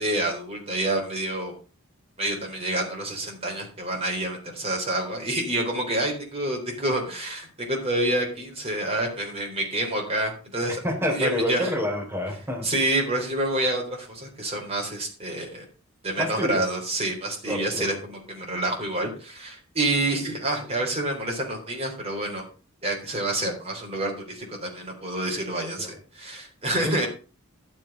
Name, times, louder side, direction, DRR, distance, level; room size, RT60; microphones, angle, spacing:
voice 1, 0.0-1.5 2.2-10.8 11.1-11.7 12.6-15.6 16.0-22.5 22.8-27.1, right 1 dB, 25° right, 0 dB, 3.8 m, -28 dB
voice 2, 10.8-12.7 16.2-16.6 17.4-18.0 25.8-25.9 26.8-27.1, left 1 dB, 10° right, -1 dB, 4.3 m, -28 dB
11.5 x 7.6 x 5.4 m, 0.36 s
head